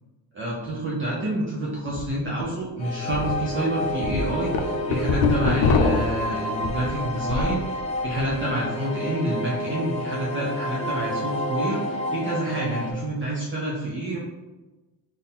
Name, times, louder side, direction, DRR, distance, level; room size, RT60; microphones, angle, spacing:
voice 1, 0.3-14.2, right 1 dB, 25° right, -5 dB, 0.6 m, -28 dB
sound 1, 1.9-2.0 2.4-2.5 3.1-3.3 3.8-7.6 7.9-8.4, left 4 dB, 65° left, 0.6 m, -24 dB
sound 2, 2.8-12.9, left 1 dB, 15° left, 0.3 m, -30 dB
4.1 x 2.7 x 3.6 m, 1.1 s
cardioid pair, 145°, 45 cm